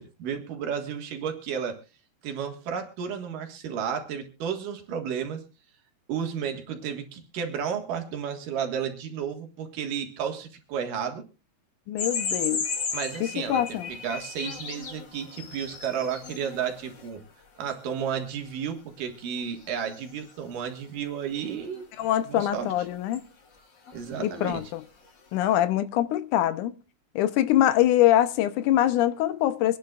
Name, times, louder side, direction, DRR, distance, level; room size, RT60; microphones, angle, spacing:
voice 1, 0.0-1.8 2.2-5.4 6.1-11.2 12.9-17.2 17.6-21.9 22.3-22.7 23.9-24.6, right 7 dB, 80° right, 3.3 m, -32 dB
voice 2, 11.9-12.7 13.2-13.9 22.0-23.2 24.2-24.8 25.3-26.7 27.2-29.8, left 12 dB, 75° left, 2.1 m, -24 dB
sound 1, 12.0-17.2 17.7-17.8 19.8-20.0 20.3-20.4 21.4-21.8 23.1-23.2 23.9-24.1 24.4-24.7, left 5 dB, 45° left, 1.9 m, -35 dB
25.0 x 10.5 x 2.4 m
omnidirectional pair, 3.7 m